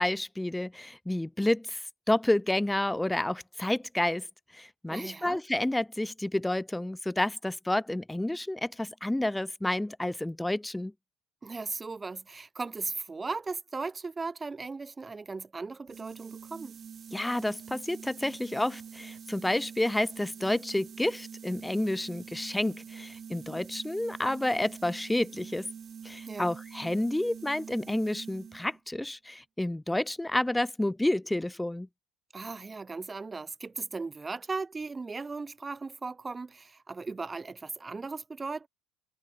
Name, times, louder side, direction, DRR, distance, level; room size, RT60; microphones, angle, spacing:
voice 1, 0.0-4.3 4.5-10.9 17.1-25.7 26.0-31.9, left 1 dB, 5° left, 0.4 m, -30 dB
voice 2, 4.9-5.4 11.4-16.8 26.3-26.5 32.3-38.7, right 4 dB, 20° right, 1.1 m, -37 dB
sound 1, 15.9-28.8, right 7 dB, 35° right, 3.2 m, -46 dB
supercardioid pair, 85°, 0 cm